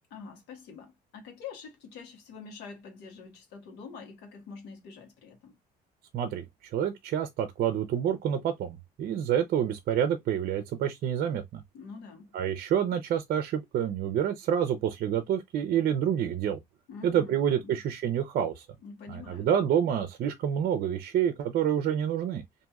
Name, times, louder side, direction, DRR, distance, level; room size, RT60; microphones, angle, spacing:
voice 1, 0.1-5.6 11.7-12.3 16.9-17.7 18.8-19.6, left 5 dB, 85° left, 1.2 m, -45 dB
voice 2, 6.1-6.4 6.7-11.6 12.3-16.6 17.0-18.6 19.1-22.4, right 9 dB, 60° right, 0.6 m, -28 dB
2.9 x 2.6 x 2.3 m
cardioid pair, 110°, 17 cm